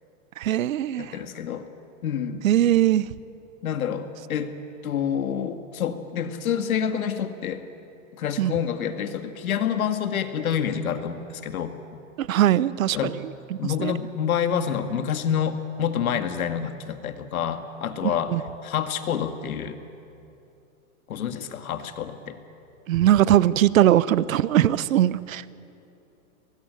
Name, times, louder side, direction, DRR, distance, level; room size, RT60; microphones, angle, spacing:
voice 1, 0.4-1.2 2.4-3.1 8.4-8.5 12.2-13.1 13.5-14.0 18.0-18.4 22.9-25.6, right 12 dB, 70° right, 18 dB, 0.9 m, -21 dB
voice 2, 1.0-1.7 2.0-2.5 3.6-4.5 4.8-7.6 8.2-11.7 12.9-13.2 13.6-18.3 18.6-19.8 21.1-22.4, left 8 dB, 80° left, 8 dB, 2.1 m, -28 dB
24.0 x 20.0 x 9.2 m, 2.7 s
supercardioid pair, 175°, 42 cm